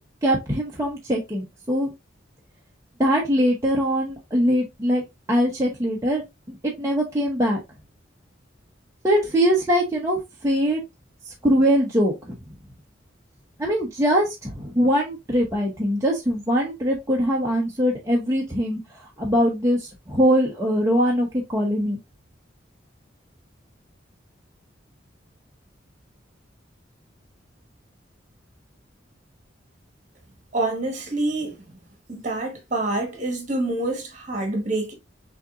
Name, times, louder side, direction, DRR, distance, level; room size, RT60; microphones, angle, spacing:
voice 1, 0.2-1.9 3.0-5.0 5.3-6.2 6.5-7.6 9.0-10.8 11.4-12.3 13.6-22.0, equal, 15° right, 0.8 m, -22 dB
voice 2, 30.5-31.6 32.1-34.9, right 2 dB, 40° right, 1.4 m, -26 dB
6.3 x 2.9 x 2.4 m
head